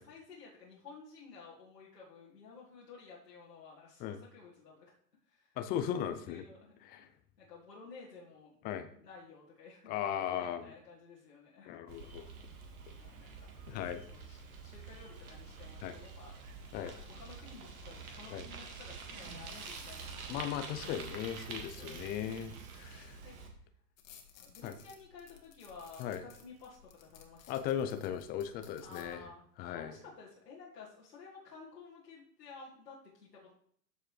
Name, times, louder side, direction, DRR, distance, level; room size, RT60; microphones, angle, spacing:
voice 1, 0.0-4.9 5.2-7.1 7.4-9.9 10.3-11.8 12.9-16.6 17.1-20.4 21.3-22.6 23.2-23.4 24.4-27.7 28.8-29.4 29.7-33.5, left 4 dB, 80° left, -6 dB, 1.9 m, -54 dB
voice 2, 5.6-6.4 6.9-7.1 8.6-8.9 9.9-10.7 11.7-12.3 13.7-14.0 15.8-15.9 16.7-16.9 18.3-18.4 20.3-23.2 24.6-24.7 26.0-26.2 27.5-29.2 29.6-29.9, left 9 dB, 20° left, 9 dB, 0.4 m, -37 dB
Bicycle, 11.9-23.5, right 4 dB, 60° right, 1.8 m, -47 dB
sound 1, 24.0-29.2, left 8 dB, 60° left, 1.7 m, -58 dB
13.0 x 4.7 x 3.2 m, 0.63 s
figure-of-eight pair, 90°, 47 cm